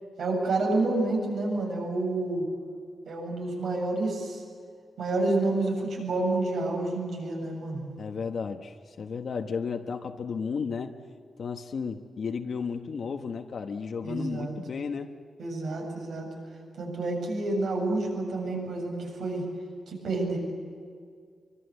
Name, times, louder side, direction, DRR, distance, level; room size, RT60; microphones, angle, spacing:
voice 1, 0.2-2.5 3.1-4.4 5.0-7.9 14.0-14.5 15.4-16.3 16.8-19.4 19.9-20.4, right 2 dB, 75° right, 1 dB, 7.8 m, -29 dB
voice 2, 8.0-11.0 11.4-15.1, left 5 dB, 55° left, 5 dB, 1.1 m, -33 dB
25.0 x 24.5 x 8.2 m, 2.2 s
wide cardioid pair, 165°, 0 cm